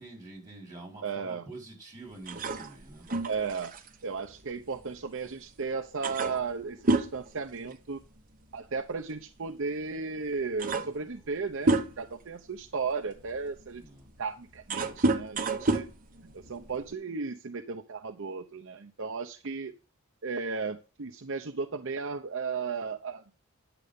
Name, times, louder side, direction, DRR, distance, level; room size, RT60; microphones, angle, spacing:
voice 1, 0.0-3.1 13.7-14.1, right 2 dB, 15° right, 5.2 m, -46 dB
voice 2, 1.0-1.5 3.3-3.7 4.0-8.0 8.5-13.8 14.2-15.9 16.3-19.7 20.2-23.2, right 4 dB, 60° right, 0.7 m, -35 dB
sound 1, 2.2-5.3 5.6-5.7 6.0-8.2 8.5-8.7 9.7-9.8 10.3-12.2 12.8-16.9, right 2 dB, 40° right, 1.1 m, -30 dB
9.7 x 6.9 x 5.3 m
head